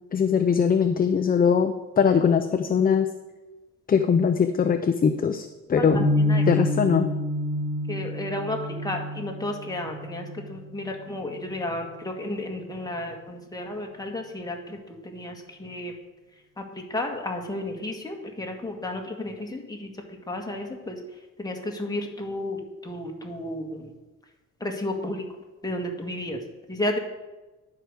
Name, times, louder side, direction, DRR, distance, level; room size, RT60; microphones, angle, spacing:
voice 1, 0.1-3.1 3.9-6.1 6.5-7.1, left 6 dB, 30° left, 8 dB, 0.6 m, -21 dB
voice 2, 5.8-6.4 7.9-8.6 8.8-14.8 15.0-15.9 16.6-16.7 16.9-19.9 20.3-21.0 21.4-23.9 24.6-25.2 25.6-26.4 26.7-27.0, left 1 dB, 15° left, 1 dB, 1.8 m, -32 dB
sound 1, 5.9-12.0, left 1 dB, 20° right, 1.9 m, -28 dB
10.5 x 4.8 x 6.6 m, 1.1 s
cardioid pair, 90°, 30 cm